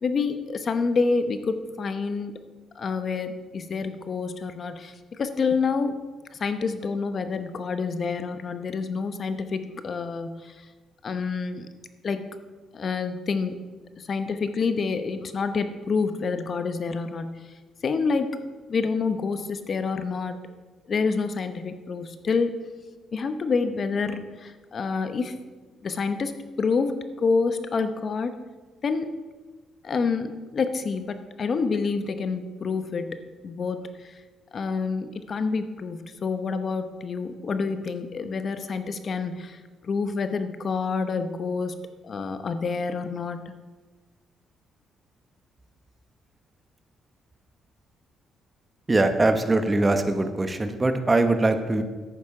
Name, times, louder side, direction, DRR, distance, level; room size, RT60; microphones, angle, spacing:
voice 1, 0.0-2.3 2.7-6.0 6.3-10.7 11.0-11.7 12.0-12.3 12.7-13.6 14.0-17.5 17.8-18.4 18.7-20.4 20.9-22.6 23.1-25.4 25.8-26.3 26.6-28.3 28.8-29.1 29.8-34.2 34.5-41.8 42.0-43.4, left 4 dB, 45° left, 10 dB, 0.9 m, -28 dB
voice 2, 48.9-51.8, right 2 dB, 20° right, 8 dB, 1.0 m, -22 dB
11.0 x 8.4 x 4.9 m, 1.3 s
cardioid pair, 90°, 0 cm